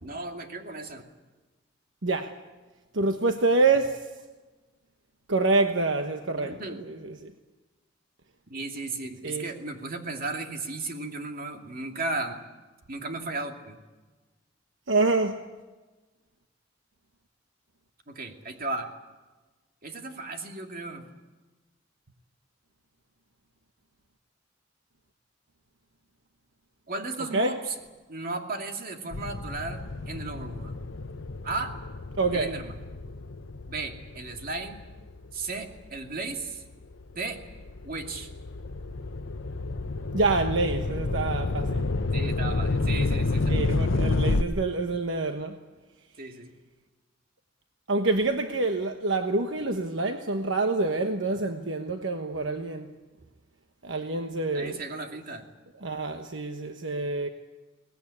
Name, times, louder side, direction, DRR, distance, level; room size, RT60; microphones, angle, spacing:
voice 1, 0.0-1.1 6.4-6.8 8.5-12.4 12.9-13.8 18.1-18.9 19.8-21.1 26.9-27.7 28.1-30.8 31.4-31.8 32.3-32.8 33.7-34.8 35.3-36.6 37.1-37.4 37.8-38.3 42.1-43.7 46.2-46.5 54.5-55.5, right 3 dB, 50° right, 3 dB, 2.5 m, -35 dB
voice 2, 2.9-4.1 5.3-7.3 9.2-9.5 14.9-15.5 27.3-27.6 32.2-32.5 40.1-41.8 43.5-45.6 47.9-52.9 53.8-54.8 55.8-57.3, right 3 dB, 70° right, 6 dB, 1.2 m, -27 dB
sound 1, 29.1-35.9 36.4-44.4, left 2 dB, 85° left, 0.9 m, -30 dB
22.5 x 19.0 x 9.8 m, 1.2 s
head